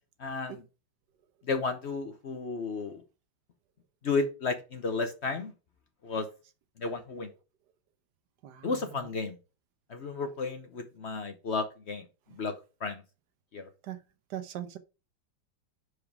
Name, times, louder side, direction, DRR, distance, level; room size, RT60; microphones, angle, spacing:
voice 1, 0.2-0.6 1.5-3.0 4.0-5.5 6.0-6.3 6.8-7.3 8.6-9.3 9.9-12.0 12.4-12.5 12.8-13.0 13.5-13.7, left 4 dB, 50° left, 0.8 m, -32 dB
voice 2, 8.4-8.8 13.8-14.0 14.3-14.8, right 11 dB, 65° right, 1.3 m, -39 dB
5.1 x 4.8 x 5.8 m
omnidirectional pair, 2.1 m